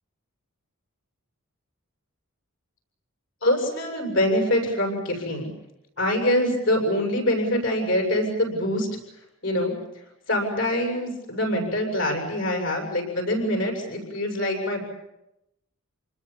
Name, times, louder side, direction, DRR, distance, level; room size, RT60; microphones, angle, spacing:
voice 1, 3.4-5.5 6.0-8.9 9.4-9.7 10.3-14.8, left 1 dB, 60° left, 2 dB, 7.6 m, -24 dB
28.0 x 20.5 x 7.3 m, 0.87 s
head